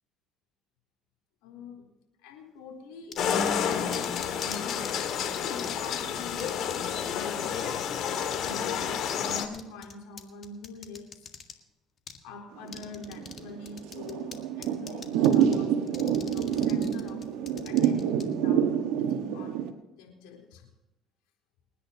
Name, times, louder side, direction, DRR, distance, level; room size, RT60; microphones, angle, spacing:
voice 1, 1.4-1.9 2.2-5.0 5.5-7.7 8.4-11.3 12.2-17.2 17.6-19.6 20.0-20.7, left 4 dB, 85° left, 1 dB, 4.0 m, -44 dB
sound 1, 3.1-4.9 5.4-6.0 6.4-6.8 7.1-7.2 7.5-8.6 8.8-11.5 12.1-12.2 12.7-13.4 13.7-14.4 14.6-15.6 15.9-18.2, left 6 dB, 45° left, 1.8 m, -43 dB
sound 2, 3.2-9.5, left 8 dB, 60° left, 2.1 m, -30 dB
Thunder / Rain, 12.6-19.7, right 9 dB, 80° right, 1.5 m, -27 dB
29.5 x 10.0 x 2.9 m, 1.0 s
supercardioid pair, 95°, 0 cm